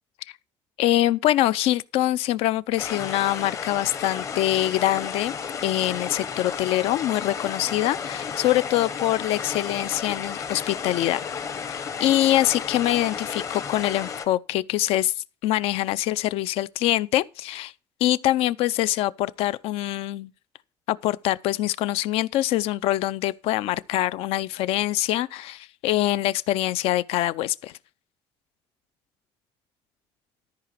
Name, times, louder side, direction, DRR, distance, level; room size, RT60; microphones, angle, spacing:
voice 1, 0.8-5.3 5.6-11.2 12.0-15.1 15.4-17.7 18.0-20.3 20.9-27.7, left 14 dB, 75° left, 0.6 m, -24 dB
sound 1, 2.8-14.3, left 6 dB, 30° left, 1.0 m, -33 dB
13.5 x 4.9 x 6.0 m
cardioid pair, 175°, 10 cm